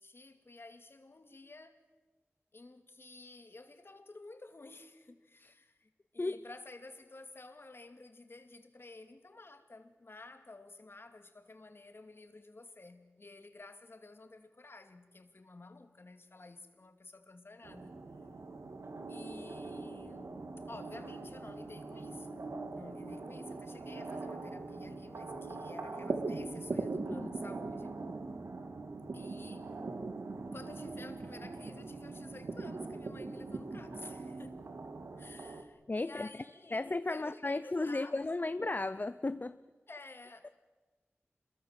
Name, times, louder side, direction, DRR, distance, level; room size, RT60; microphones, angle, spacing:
voice 1, 0.0-1.8 2.5-18.0 19.1-22.3 22.7-28.0 29.1-29.7 30.5-34.6 35.2-36.8 37.1-38.5 39.9-40.5, left 2 dB, 55° left, 2.4 m, -52 dB
sound 1, 17.6-35.6, right 3 dB, 85° right, 2.0 m, -41 dB
voice 2, 35.9-36.3 36.7-39.6 40.4-40.5, left 2 dB, 40° left, 0.7 m, -34 dB
27.0 x 22.0 x 7.5 m
wide cardioid pair, 50°, 5 cm